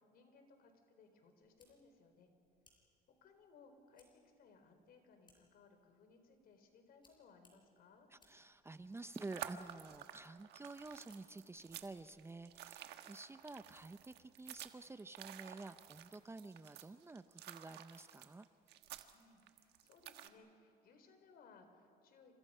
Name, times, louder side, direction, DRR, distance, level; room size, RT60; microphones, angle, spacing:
voice 1, 0.0-2.3 3.2-8.1 19.1-22.3, left 4 dB, 65° left, 6 dB, 4.0 m, -64 dB
sound 1, 1.4-12.8, left 2 dB, 25° left, 5.8 m, -77 dB
voice 2, 8.1-18.5, right 3 dB, 15° right, 12 dB, 0.6 m, -51 dB
sound 2, 8.8-20.3, right 12 dB, 80° right, 1.4 m, -52 dB
29.0 x 26.5 x 5.6 m, 2.7 s
cardioid pair, 110°, 17 cm